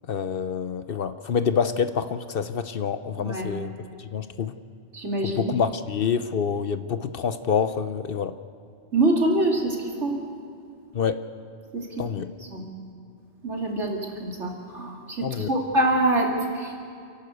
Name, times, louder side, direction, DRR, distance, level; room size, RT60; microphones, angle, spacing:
voice 1, 0.1-4.5 5.2-8.3 10.9-11.2 12.0-12.3 15.2-15.5, left 6 dB, 55° left, 11 dB, 0.8 m, -27 dB
voice 2, 3.2-3.5 4.9-5.5 8.9-9.8 10.0-10.2 11.7-11.9 12.5-12.6 13.4-16.8, right 1 dB, 75° right, 0 dB, 3.0 m, -25 dB
28.5 x 11.5 x 8.1 m, 2.4 s
omnidirectional pair, 1.2 m